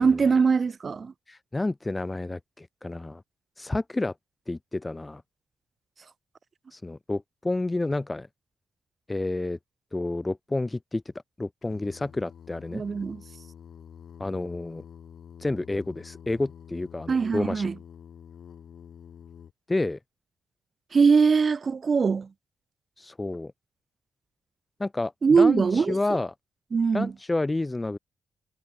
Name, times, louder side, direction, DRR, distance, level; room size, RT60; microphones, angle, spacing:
voice 1, 0.0-1.1 12.7-13.2 17.1-17.7 20.9-22.3 25.2-26.0 26.7-27.1, right 5 dB, 45° right, 0.4 m, -21 dB
voice 2, 1.3-3.2 3.6-4.1 4.5-5.2 6.7-8.3 9.1-9.6 9.9-11.0 11.4-12.8 14.2-14.8 15.4-17.7 19.7-20.0 23.0-23.5 24.8-26.3 26.9-28.0, left 2 dB, 20° left, 0.8 m, -30 dB
Singing, 11.6-19.5, left 8 dB, 65° left, 2.7 m, -48 dB
supercardioid pair, 50°, 0 cm